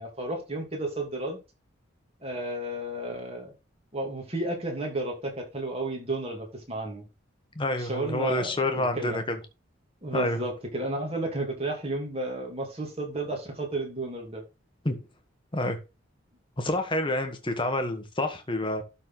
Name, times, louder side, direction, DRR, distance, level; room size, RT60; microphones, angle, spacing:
voice 1, 0.0-1.4 2.2-3.5 3.9-7.0 7.8-9.2 10.0-14.4, right 1 dB, 30° right, 2.7 m, -32 dB
voice 2, 7.5-9.4 10.1-10.4 14.8-15.0 15.5-15.8 16.6-18.8, left 1 dB, 25° left, 1.3 m, -28 dB
12.0 x 4.3 x 3.9 m
head